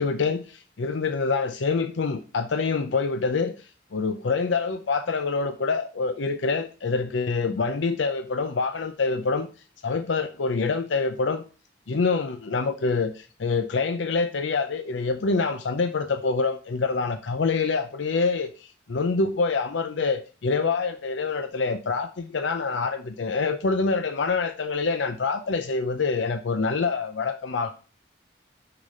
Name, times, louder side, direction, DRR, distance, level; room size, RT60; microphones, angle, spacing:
voice 1, 0.0-9.5 9.8-11.4 11.9-27.7, left 4 dB, 90° left, 0.6 m, -26 dB
6.4 x 5.9 x 3.7 m
head